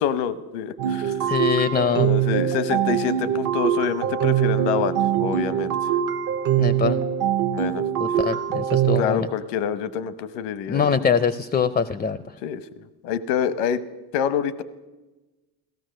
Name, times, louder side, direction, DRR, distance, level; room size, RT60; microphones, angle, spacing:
voice 1, 0.0-1.1 1.9-5.8 7.5-7.8 9.0-10.9 12.4-12.6 13.0-13.8 14.1-14.6, left 8 dB, 90° left, 15 dB, 1.0 m, -26 dB
sound 1, 0.8-9.0, right 9 dB, 50° right, 0.8 m, -23 dB
voice 2, 1.3-2.1 6.6-7.0 8.0-9.3 10.7-12.2, left 6 dB, 20° left, 15 dB, 0.4 m, -23 dB
15.5 x 13.5 x 6.4 m, 1.2 s
cardioid pair, 115°, 43 cm